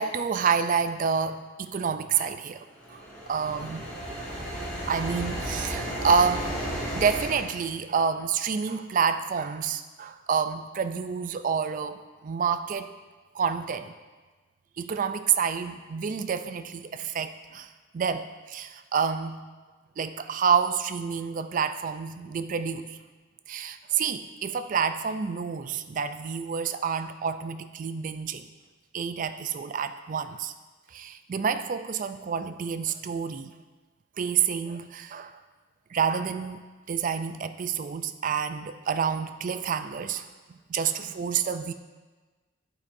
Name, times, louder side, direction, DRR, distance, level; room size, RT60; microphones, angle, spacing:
voice 1, 0.0-2.6 2.9-3.0 3.3-3.9 4.3-4.4 4.9-6.6 6.9-12.9 13.3-13.9 14.8-17.7 17.9-19.5 20.0-23.0 23.5-28.4 28.9-30.5 30.9-33.5 34.2-35.4 35.9-36.6 36.9-40.3 40.7-41.7, right 6 dB, 40° right, 10 dB, 0.3 m, -28 dB
sound 1, 2.8-7.5, equal, 5° left, 2.1 m, -33 dB
8.6 x 8.5 x 2.6 m, 1.3 s
head